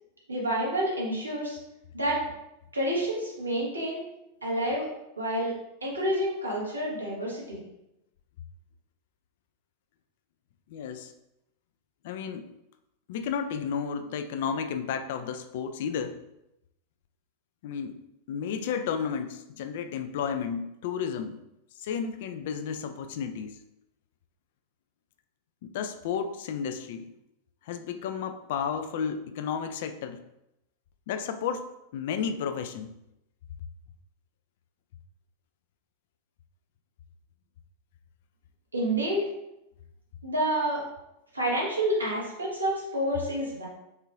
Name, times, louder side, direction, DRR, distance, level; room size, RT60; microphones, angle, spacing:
voice 1, 0.3-1.6 1.9-2.2 2.7-4.1 4.4-4.9 5.2-5.6 5.8-7.6 38.7-39.3 40.2-40.8 41.3-43.7, right 1 dB, 80° right, -4 dB, 1.2 m, -28 dB
voice 2, 10.7-11.1 12.0-12.5 13.1-16.2 17.6-18.0 18.3-21.4 21.8-23.6 25.6-27.1 27.7-30.2 31.1-32.9, left 7 dB, 55° left, 9 dB, 0.3 m, -32 dB
4.3 x 3.6 x 2.4 m, 0.87 s
figure-of-eight pair, 90°, 0 cm